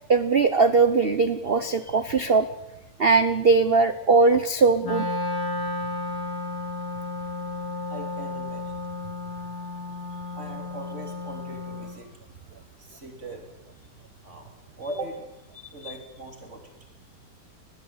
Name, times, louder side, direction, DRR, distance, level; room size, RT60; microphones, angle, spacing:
voice 1, 0.1-2.5 3.0-5.1 15.8-15.9, right 4 dB, 55° right, 12 dB, 0.6 m, -20 dB
Wind instrument woodwind instrument, 4.8-12.0, left 2 dB, 90° left, 5.2 m, -33 dB
voice 2, 7.9-8.9 10.3-12.3 12.8-13.4 14.2-14.5 14.8-15.3 15.7-16.6, right 2 dB, 30° right, 3 dB, 3.8 m, -39 dB
20.5 x 17.5 x 8.7 m, 0.89 s
omnidirectional pair, 2.3 m